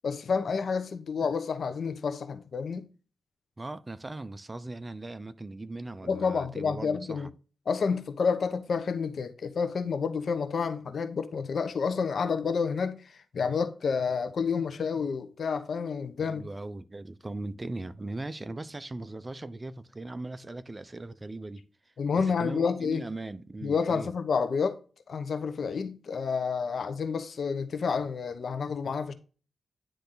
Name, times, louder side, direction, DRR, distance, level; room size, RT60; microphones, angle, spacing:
voice 1, 0.0-2.9 6.0-7.3 7.7-16.4 22.0-23.0 23.6-24.8 25.1-29.1, left 5 dB, 70° left, 0.9 m, -29 dB
voice 2, 3.6-7.3 16.2-21.6 22.4-24.1, right 2 dB, 30° right, 0.6 m, -39 dB
10.0 x 3.4 x 3.9 m
cardioid pair, 60°, 0 cm